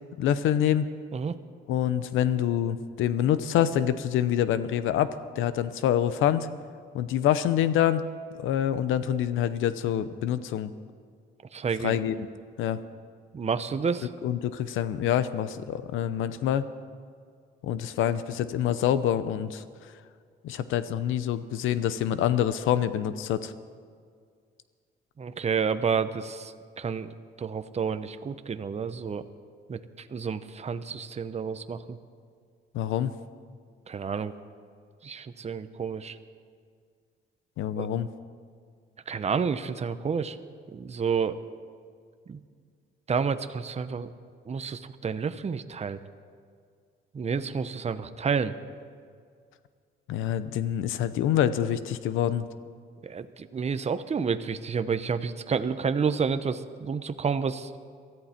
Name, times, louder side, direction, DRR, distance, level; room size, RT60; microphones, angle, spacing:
voice 1, 0.2-0.9 1.7-6.5 6.9-8.0 8.4-10.7 11.8-12.1 12.6-12.8 14.2-16.6 17.6-19.6 20.4-23.5 32.7-33.1 37.6-38.1 50.1-52.5, left 10 dB, 90° left, 13 dB, 0.8 m, -26 dB
voice 2, 11.5-12.0 13.3-14.1 25.2-29.2 29.7-29.8 30.1-32.0 33.9-34.3 35.0-36.2 37.8-37.9 39.1-40.4 40.7-41.4 42.3-42.4 43.1-44.1 44.5-46.0 47.1-48.5 53.0-57.7, right 6 dB, 35° right, 10 dB, 0.8 m, -30 dB
23.0 x 14.0 x 4.4 m, 2.1 s
cardioid pair, 90°, 20 cm